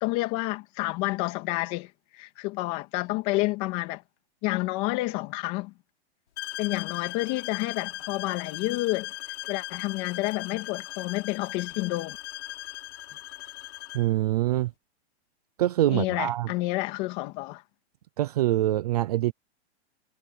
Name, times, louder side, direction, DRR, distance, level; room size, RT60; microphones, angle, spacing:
voice 1, 0.0-4.0 4.4-5.7 6.6-9.1 9.5-12.2 15.9-17.6, left 21 dB, 25° left, 2.5 m, -29 dB
sound 1, 6.4-14.1, left 14 dB, 85° left, 5.8 m, -38 dB
voice 2, 13.9-14.7 15.6-16.5 18.2-19.3, right 14 dB, 35° right, 0.6 m, -24 dB
supercardioid pair, 175°, 33 cm